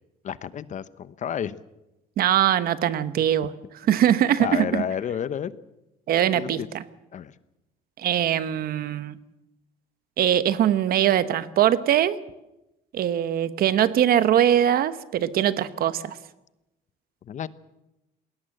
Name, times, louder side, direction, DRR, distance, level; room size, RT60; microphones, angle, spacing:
voice 1, 0.2-1.6 3.2-3.3 4.4-5.5 6.3-6.7 7.1-7.4 17.3-17.5, left 9 dB, 45° left, 16 dB, 0.9 m, -31 dB
voice 2, 2.2-3.5 3.9-4.8 6.1-6.8 8.0-9.1 10.2-12.2 12.9-16.2, right 10 dB, 60° right, 14 dB, 1.1 m, -22 dB
20.5 x 18.0 x 7.7 m, 0.94 s
cardioid pair, 110°, 17 cm